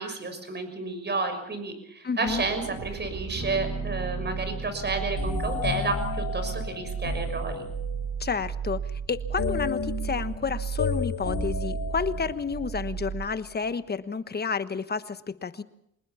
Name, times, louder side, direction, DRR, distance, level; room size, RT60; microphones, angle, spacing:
voice 1, 0.0-7.7, right 3 dB, 35° right, 8 dB, 6.2 m, -31 dB
voice 2, 2.0-2.4 8.2-15.6, left 5 dB, 35° left, 12 dB, 1.3 m, -31 dB
sound 1, 2.3-13.7, right 7 dB, 60° right, 2.5 m, -34 dB
sound 2, 3.4-11.0, left 5 dB, 15° left, 1.8 m, -45 dB
sound 3, 5.2-8.2 9.4-12.7, left 6 dB, 60° left, 4.3 m, -32 dB
25.0 x 20.0 x 5.8 m, 0.76 s
cardioid pair, 90°, 30 cm